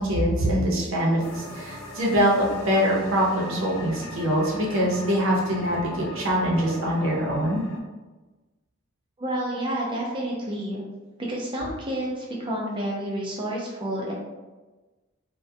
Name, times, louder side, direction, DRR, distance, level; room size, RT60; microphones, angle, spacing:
voice 1, 0.0-7.6, equal, 70° right, -4 dB, 0.6 m, -23 dB
sound 1, 1.2-7.8, left 1 dB, 80° left, 0.4 m, -39 dB
voice 2, 9.2-10.8 11.3-14.1, right 1 dB, 25° right, -3 dB, 0.5 m, -29 dB
2.2 x 2.1 x 2.6 m, 1.2 s
head